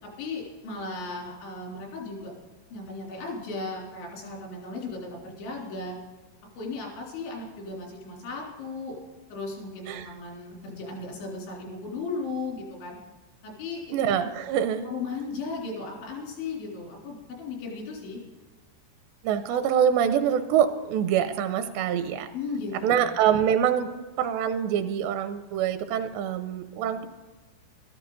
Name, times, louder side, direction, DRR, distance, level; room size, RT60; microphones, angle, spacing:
voice 1, 0.0-2.3 2.7-6.0 6.6-9.0 9.3-13.0 13.4-13.8 14.8-18.2 22.3-23.0, left 3 dB, 85° left, -2 dB, 6.0 m, -36 dB
voice 2, 13.9-14.9 19.2-22.3 22.8-23.9 24.2-27.1, right 9 dB, 85° right, 9 dB, 2.7 m, -25 dB
14.0 x 13.5 x 4.0 m, 1.3 s
omnidirectional pair, 5.2 m